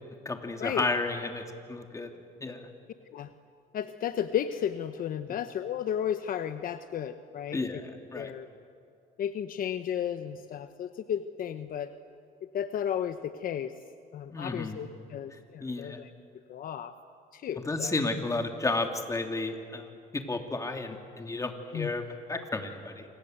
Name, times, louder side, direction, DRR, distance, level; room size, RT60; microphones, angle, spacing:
voice 1, 0.2-2.1 2.4-2.7 7.5-8.3 14.3-14.8 15.6-16.0 17.6-23.0, left 3 dB, 20° left, 4 dB, 2.9 m, -32 dB
voice 2, 3.7-7.8 8.1-8.5 9.2-11.9 12.5-13.7 14.1-16.1 16.5-16.9 17.3-17.9 21.7-21.9, left 9 dB, 55° left, 10 dB, 1.0 m, -33 dB
28.5 x 26.0 x 8.0 m, 2.4 s
cardioid pair, 110°, 17 cm